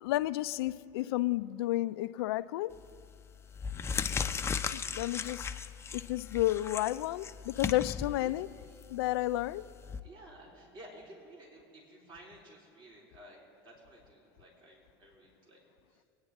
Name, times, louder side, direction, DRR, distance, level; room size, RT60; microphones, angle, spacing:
voice 1, 0.0-2.7 4.7-5.5 5.9-8.5 8.9-9.6, left 16 dB, 80° left, 15 dB, 0.4 m, -31 dB
sound 1, 2.7-3.0 3.5-10.0, left 6 dB, 20° left, 0.6 m, -37 dB
voice 2, 8.1-8.8 9.3-9.5 10.0-15.6 15.9-16.0, right 1 dB, 40° right, -2 dB, 3.7 m, -54 dB
22.0 x 9.6 x 3.6 m, 2.7 s
supercardioid pair, 100°, 13 cm